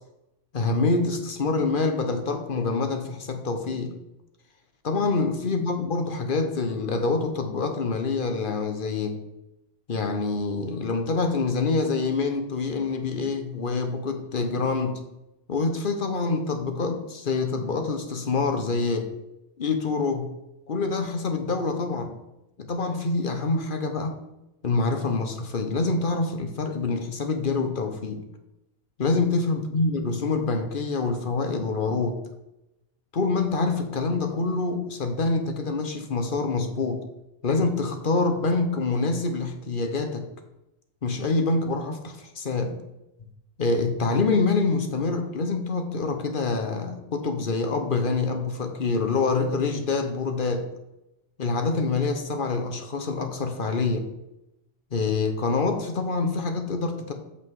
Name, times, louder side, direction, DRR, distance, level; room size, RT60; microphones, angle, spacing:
voice 1, 0.5-3.9 4.8-9.2 9.9-15.0 15.5-19.1 19.6-20.3 20.7-22.1 22.6-24.2 24.6-28.2 29.0-32.2 33.1-37.0 37.4-40.3 41.0-42.8 43.6-50.7 51.4-54.1 54.9-57.1, left 3 dB, 45° left, 6 dB, 1.0 m, -26 dB
7.5 x 5.8 x 4.7 m, 0.91 s
omnidirectional pair, 1.3 m